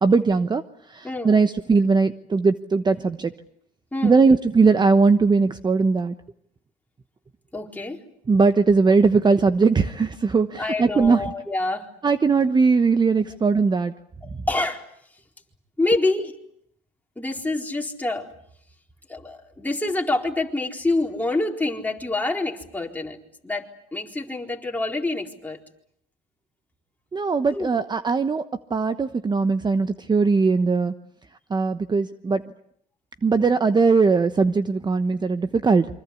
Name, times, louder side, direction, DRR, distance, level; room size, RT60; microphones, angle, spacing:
voice 1, 0.0-3.3 4.0-6.1 8.3-11.2 12.0-13.9 27.1-28.4 28.7-30.9 31.5-32.4 33.2-35.9, right 4 dB, 25° right, 11 dB, 1.1 m, -20 dB
voice 2, 1.0-1.4 3.9-4.2 7.5-8.0 10.6-11.9 14.2-14.9 15.8-16.4 17.2-18.3 19.1-25.6 27.5-27.7, left 2 dB, 10° left, 1 dB, 4.2 m, -27 dB
27.5 x 25.0 x 8.4 m, 0.69 s
cardioid pair, 100°, 17 cm